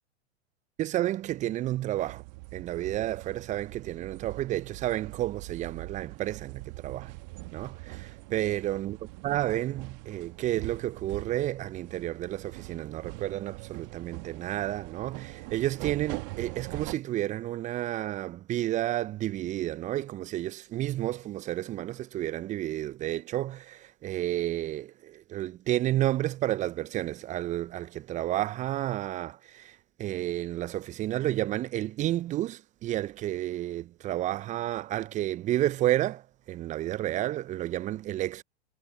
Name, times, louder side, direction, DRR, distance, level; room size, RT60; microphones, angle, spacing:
voice 1, 0.8-2.2 2.5-7.2 7.5-38.4, right 14 dB, 20° right, 0.8 m, -31 dB
sound 1, 2.0-16.9, right 30 dB, 40° right, 1.6 m, -43 dB
figure-of-eight pair, 105°, 35 cm